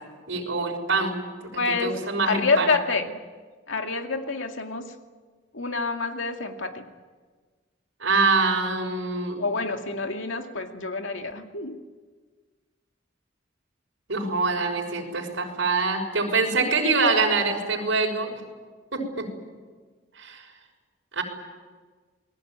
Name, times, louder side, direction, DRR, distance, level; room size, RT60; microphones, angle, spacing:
voice 1, 0.3-1.2 1.8-2.7 8.0-9.4 14.1-18.4 18.9-19.3 20.2-20.5 21.1-21.2, right 3 dB, 85° right, 1 dB, 6.0 m, -24 dB
voice 2, 1.6-2.0 2.3-3.2 3.7-4.9 5.5-6.9 9.4-11.8, left 4 dB, 85° left, 4 dB, 2.3 m, -27 dB
28.5 x 20.0 x 9.0 m, 1.4 s
head